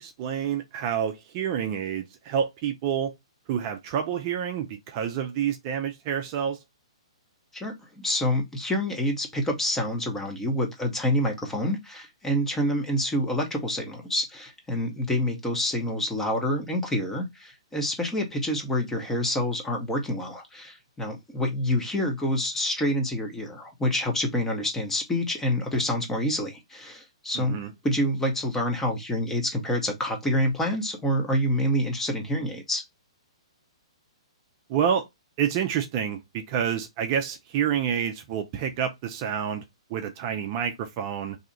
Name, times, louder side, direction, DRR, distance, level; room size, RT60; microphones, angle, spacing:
voice 1, 0.0-3.2 3.5-6.6 27.3-27.7 34.7-35.1 35.4-39.6 39.9-41.4, right 8 dB, 35° right, 0.5 m, -28 dB
voice 2, 7.5-32.8, equal, 10° left, 0.9 m, -27 dB
2.7 x 2.4 x 4.1 m
figure-of-eight pair, 125°, 3 cm